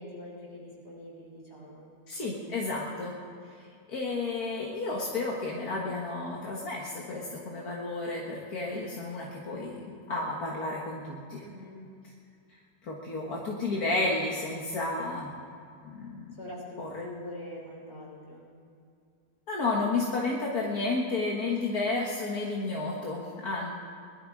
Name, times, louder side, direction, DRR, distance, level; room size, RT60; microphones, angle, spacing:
voice 1, 0.0-1.9 11.4-11.9 16.4-18.5, left 1 dB, 45° left, -4 dB, 4.3 m, -44 dB
voice 2, 2.1-3.1 3.6-11.4 12.8-15.3 15.8-16.4 16.8-17.1 19.5-23.7, left 3 dB, 75° left, -2 dB, 2.0 m, -32 dB
20.0 x 12.0 x 4.9 m, 2.4 s
omnidirectional pair, 1.6 m